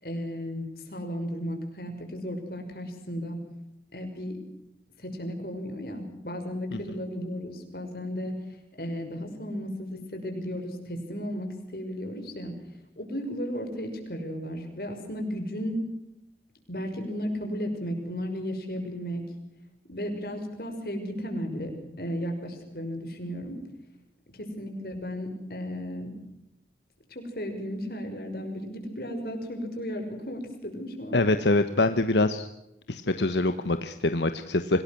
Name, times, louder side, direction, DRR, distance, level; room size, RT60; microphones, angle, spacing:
voice 1, 0.0-3.4 3.9-4.4 5.0-8.3 8.8-12.5 13.0-15.8 16.7-19.2 19.9-21.7 22.0-23.6 24.3-26.1 27.1-31.2, equal, 55° left, 4 dB, 6.1 m, -34 dB
voice 2, 31.1-32.5 32.9-34.8, left 2 dB, 85° left, 9 dB, 1.3 m, -24 dB
26.0 x 19.0 x 6.2 m, 0.86 s
head